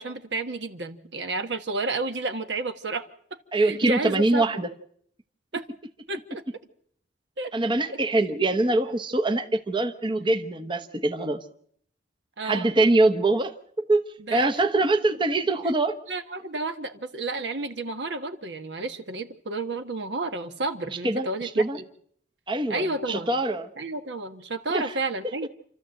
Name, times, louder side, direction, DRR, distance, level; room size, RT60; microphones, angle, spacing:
voice 1, 0.0-3.1 3.5-4.5 5.5-5.6 6.1-6.4 7.4-7.5 7.9-8.0 12.4-12.7 14.3-14.5 16.1-21.9 22.7-23.3 23.8-25.5, right 2 dB, 75° right, 8 dB, 1.4 m, -31 dB
voice 2, 3.5-4.7 7.5-11.4 12.4-13.5 13.9-14.0 14.3-16.0 21.0-21.8 22.5-23.7 24.7-25.0, right 2 dB, 25° right, 6 dB, 0.9 m, -23 dB
28.0 x 13.0 x 7.8 m, 0.66 s
head